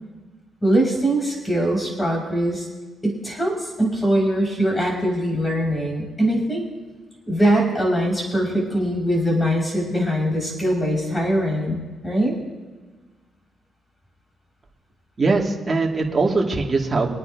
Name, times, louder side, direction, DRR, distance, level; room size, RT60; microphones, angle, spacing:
voice 1, 0.6-2.7 3.0-6.6 7.3-12.3, right 1 dB, 15° left, -2 dB, 5.1 m, -22 dB
voice 2, 15.2-17.1, right 3 dB, 30° right, 0 dB, 2.1 m, -21 dB
27.0 x 9.4 x 2.7 m, 1.3 s
cardioid pair, 95°, 0 cm